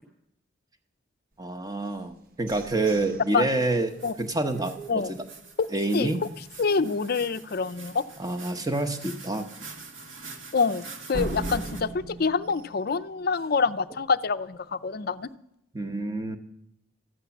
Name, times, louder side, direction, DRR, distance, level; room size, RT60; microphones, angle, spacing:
voice 1, 1.4-3.9 4.2-5.2 5.7-6.2 8.2-9.5 15.7-16.4, right 2 dB, 20° right, 8 dB, 0.9 m, -27 dB
sound 1, 1.8-5.7 6.2-6.3 6.7-7.1 7.4-7.5 8.0-8.1 11.1-13.8, right 1 dB, 45° right, 0.9 m, -39 dB
sound 2, 3.9-11.8, right 4 dB, 70° right, 1.5 m, -45 dB
voice 2, 6.6-8.0 10.5-15.3, left 5 dB, 45° left, 13 dB, 0.5 m, -26 dB
14.0 x 9.6 x 7.1 m, 0.81 s
head